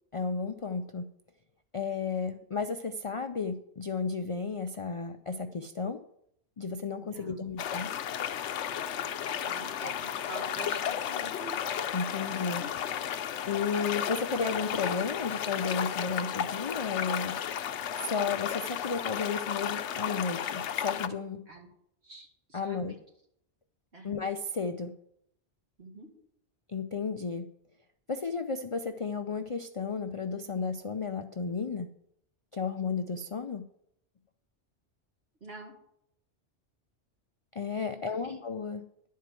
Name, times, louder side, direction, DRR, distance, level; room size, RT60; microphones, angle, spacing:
voice 1, 0.1-1.1 1.7-6.0 6.6-8.0 11.9-12.7 13.4-17.4 18.0-21.5 22.5-22.9 24.0-24.9 26.7-27.5 28.1-31.9 32.5-33.7 37.5-38.8, left 5 dB, 45° left, 7 dB, 0.4 m, -33 dB
voice 2, 7.0-7.5 9.4-11.6 21.5-21.7 22.0-23.0 23.9-24.2 25.8-26.1 35.4-35.7 37.9-38.4, right 2 dB, 65° right, 0 dB, 2.4 m, -46 dB
sound 1, 7.6-21.1, left 9 dB, 80° left, 0.9 m, -33 dB
11.0 x 4.7 x 7.5 m, 0.73 s
omnidirectional pair, 1.2 m